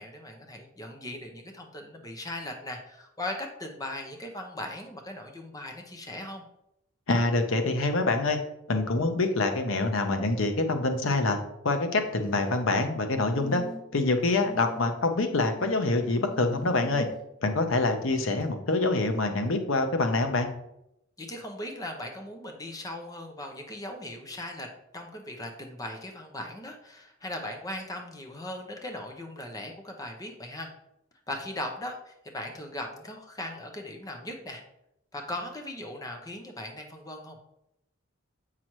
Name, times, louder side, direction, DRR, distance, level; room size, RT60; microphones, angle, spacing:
voice 1, 0.0-6.4 21.2-24.7 24.9-30.7 31.3-34.6 35.1-37.4, left 1 dB, 20° left, 3 dB, 0.8 m, -38 dB
voice 2, 7.1-8.4 8.7-11.4 11.6-13.6 13.9-17.1 17.4-20.5, left 2 dB, 70° left, 6 dB, 0.8 m, -25 dB
sound 1, 12.0-12.6 13.3-14.0 14.4-14.9 15.6-17.2 18.4-18.5, right 1 dB, 45° left, 1.7 m, -44 dB
7.7 x 5.8 x 3.1 m, 0.81 s
head